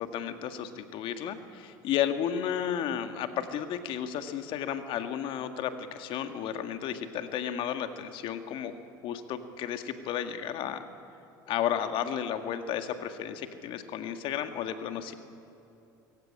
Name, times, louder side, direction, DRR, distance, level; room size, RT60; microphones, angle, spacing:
voice 1, 0.0-8.8 9.0-10.9 11.5-15.1, left 9 dB, 60° left, 8 dB, 1.9 m, -33 dB
22.5 x 16.5 x 9.9 m, 2.9 s
hypercardioid pair, 80°, 10 cm